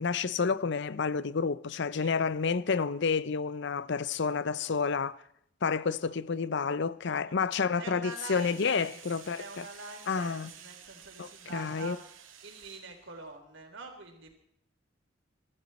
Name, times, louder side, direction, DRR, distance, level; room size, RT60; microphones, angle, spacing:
voice 1, 0.0-5.2 5.6-9.7 10.1-10.5 11.2-12.0, left 5 dB, 60° left, 0.6 m, -30 dB
voice 2, 7.0-7.4 7.8-9.0 9.3-12.1 12.4-14.3, right 3 dB, 70° right, 3.8 m, -45 dB
sound 1, 8.1-13.4, right 8 dB, 90° right, 2.2 m, -52 dB
23.0 x 13.5 x 4.3 m
head